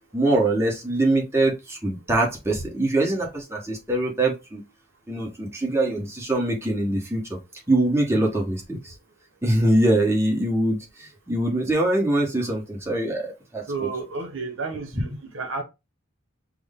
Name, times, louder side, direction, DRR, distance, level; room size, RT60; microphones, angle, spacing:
voice 1, 0.1-4.6 5.1-7.4 7.7-8.9 9.4-13.9, right 1 dB, 15° right, 1.2 m, -23 dB
voice 2, 13.7-15.1 15.3-15.6, right 4 dB, 65° right, 0.8 m, -31 dB
6.1 x 2.1 x 3.6 m
head